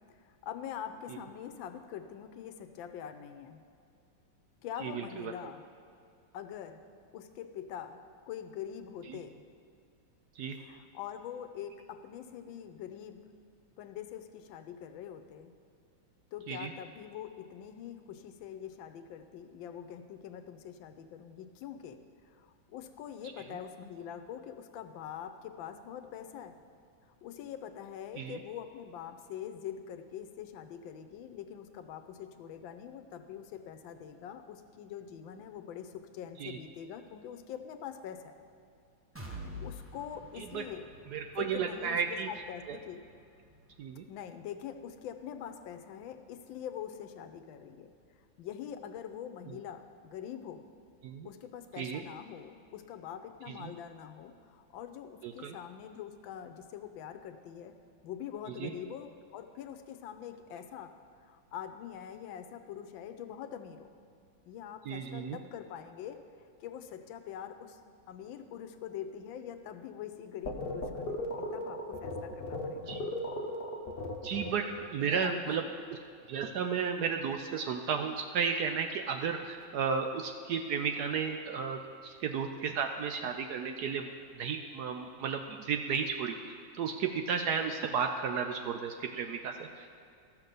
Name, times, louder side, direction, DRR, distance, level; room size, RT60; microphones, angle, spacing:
voice 1, 0.1-3.6 4.6-5.6 6.3-6.8 7.1-8.0 8.3-9.4 10.5-13.2 13.8-15.5 16.3-22.0 22.2-26.5 27.2-38.3 39.2-40.9 41.4-43.0 44.1-47.9 48.4-50.6 51.2-57.7 58.0-60.9 61.2-63.9 64.4-66.2 66.6-67.8 68.1-73.0 75.0-75.7, left 9 dB, 90° left, 8 dB, 1.4 m, -44 dB
voice 2, 4.8-5.3 9.1-9.2 10.4-10.6 16.5-16.7 28.2-28.4 36.4-36.6 40.4-40.6 41.1-42.3 42.7-42.8 43.8-44.0 51.0-51.3 51.8-52.0 53.6-53.7 55.2-55.6 58.6-58.7 64.9-65.4 72.9-73.0 74.2-75.6 75.9-76.0 76.3-89.9, right 6 dB, 70° right, 5 dB, 1.0 m, -33 dB
sound 1, 39.1-46.9 47.3-47.5 47.9-48.0, equal, 15° right, 0.5 m, -50 dB
sound 2, 70.4-74.9, left 1 dB, 45° left, 0.8 m, -37 dB
13.0 x 6.0 x 6.7 m, 2.4 s
omnidirectional pair, 2.1 m